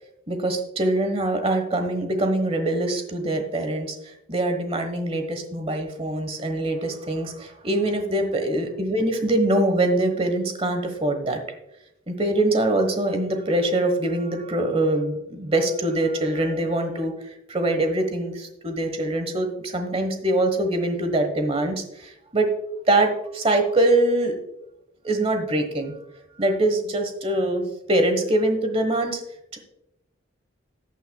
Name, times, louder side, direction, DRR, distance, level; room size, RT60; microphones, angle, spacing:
voice 1, 0.3-11.4 12.1-22.5 22.9-24.4 25.0-25.9 26.4-29.2 29.5-29.6, right 1 dB, 30° right, 6 dB, 1.3 m, -23 dB
14.0 x 9.1 x 2.3 m, 0.84 s
head